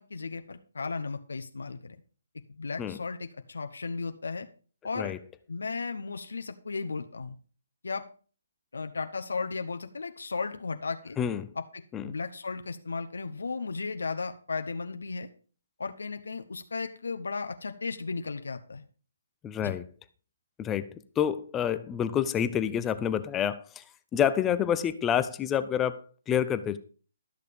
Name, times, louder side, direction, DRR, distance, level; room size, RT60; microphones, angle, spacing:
voice 1, 0.0-2.0 2.6-4.5 4.8-5.1 5.5-7.3 7.8-8.1 8.7-11.2 11.7-15.3 15.8-18.8 19.6-19.7, left 4 dB, 85° left, 7 dB, 0.9 m, -35 dB
voice 2, 11.2-11.5 11.9-12.1 19.4-19.9 20.6-23.8 24.1-26.0 26.3-26.8, left 9 dB, 15° left, 13 dB, 0.5 m, -28 dB
13.0 x 6.7 x 5.2 m, 0.40 s
hypercardioid pair, 155°, 0 cm